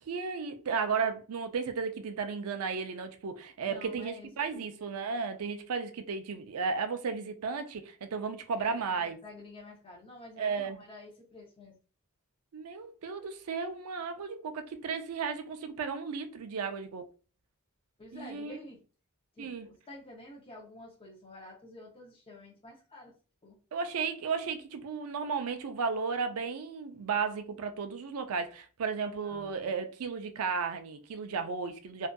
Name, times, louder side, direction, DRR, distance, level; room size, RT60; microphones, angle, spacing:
voice 1, 0.0-9.2 10.4-10.8 12.5-17.1 18.1-18.6 19.4-19.7 23.7-32.1, right 5 dB, 70° right, 0.4 m, -34 dB
voice 2, 3.6-4.7 8.5-11.8 18.0-18.8 19.3-23.1 23.4-23.6 29.2-29.7, left 2 dB, 25° left, 0.6 m, -49 dB
2.6 x 2.3 x 2.2 m
head